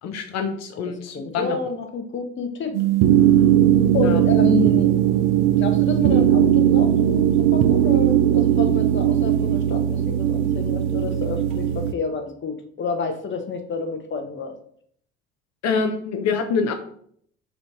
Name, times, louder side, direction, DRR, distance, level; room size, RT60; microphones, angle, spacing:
voice 1, 0.0-1.6 4.0-4.2 15.6-16.7, left 5 dB, 50° left, 6 dB, 0.9 m, -25 dB
voice 2, 0.8-2.8 3.2-3.5 3.9-4.9 5.6-14.5, left 4 dB, 35° left, 6 dB, 1.2 m, -29 dB
sound 1, 2.7-11.9, right 11 dB, 55° right, 0.6 m, -18 dB
5.2 x 3.4 x 5.5 m, 0.63 s
figure-of-eight pair, 60°, 35 cm